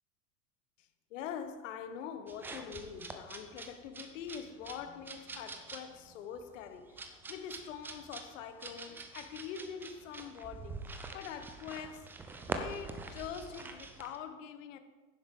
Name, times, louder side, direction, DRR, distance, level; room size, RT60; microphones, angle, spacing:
voice 1, 0.8-12.1 12.5-14.8, left 8 dB, 60° left, 1.0 m, -44 dB
sound 1, 2.3-14.2, right 3 dB, 5° right, 0.3 m, -45 dB
11.0 x 9.9 x 3.5 m
hypercardioid pair, 95°, 43 cm